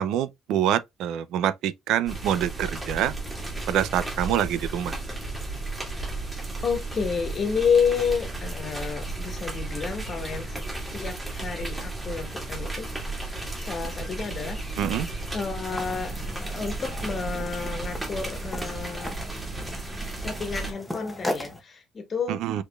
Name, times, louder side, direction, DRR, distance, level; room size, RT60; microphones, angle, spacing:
voice 1, 0.0-3.1 3.7-4.9 14.8-15.1 22.3-22.6, right 10 dB, 80° right, 0.5 m, -26 dB
sound 1, 2.1-20.7, right 2 dB, 10° right, 2.1 m, -34 dB
voice 2, 6.6-13.1 13.6-14.6 15.3-19.2 20.2-22.4, left 6 dB, 35° left, 1.4 m, -30 dB
sound 2, 15.7-21.6, left 1 dB, 5° left, 0.9 m, -38 dB
5.1 x 4.2 x 2.3 m
cardioid pair, 145°, 0 cm